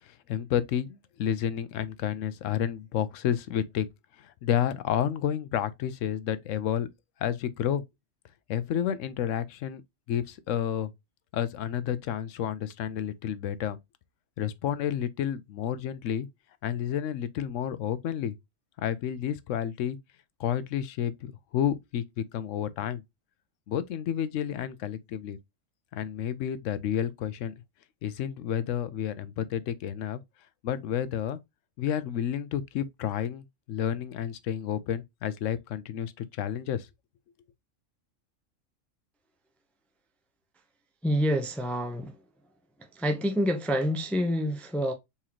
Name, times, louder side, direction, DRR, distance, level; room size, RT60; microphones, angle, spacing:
voice 1, 0.3-3.9 4.2-6.9 7.2-7.8 8.5-9.8 10.1-10.9 11.3-13.8 14.4-16.3 16.6-18.3 18.8-20.0 20.4-23.0 23.7-25.4 25.9-27.5 28.0-30.2 30.6-31.4 31.8-36.9, left 9 dB, 75° left, 0.9 m, -30 dB
voice 2, 41.0-42.2 42.9-44.9, equal, ahead, 0.5 m, -27 dB
4.3 x 3.7 x 2.9 m
omnidirectional pair, 1.4 m